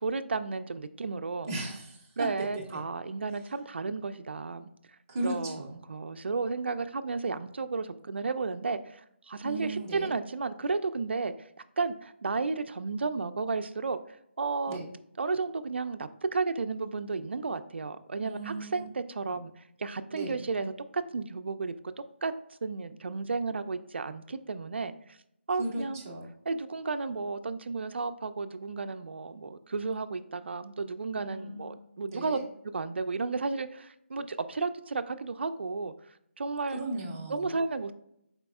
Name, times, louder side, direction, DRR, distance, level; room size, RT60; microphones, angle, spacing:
voice 1, 0.0-1.5 2.2-4.7 5.2-9.0 9.3-11.5 11.8-14.0 14.4-14.8 15.2-19.5 19.8-21.7 22.2-22.3 22.6-24.9 25.5-26.0 26.5-32.4 32.7-35.9 36.4-36.8 37.3-37.9, right 4 dB, 60° right, 10 dB, 0.3 m, -33 dB
voice 2, 1.5-2.8 5.1-5.8 9.4-10.1 14.7-14.9 18.2-18.8 19.3-19.4 20.1-20.4 25.6-26.3 31.2-31.8 32.1-32.5 36.7-37.5, right 2 dB, 15° right, -3 dB, 0.6 m, -36 dB
5.1 x 4.1 x 2.3 m, 0.77 s
figure-of-eight pair, 175°, 7 cm